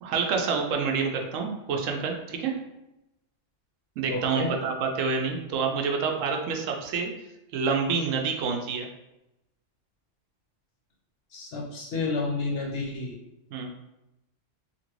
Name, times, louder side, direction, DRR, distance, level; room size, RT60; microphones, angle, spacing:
voice 1, 0.0-2.5 4.0-7.1 7.5-8.9 13.5-13.7, right 5 dB, 85° right, 2 dB, 0.9 m, -27 dB
voice 2, 4.1-4.5 11.3-13.1, left 3 dB, 60° left, -2 dB, 0.8 m, -30 dB
2.9 x 2.5 x 3.0 m, 0.91 s
omnidirectional pair, 1.3 m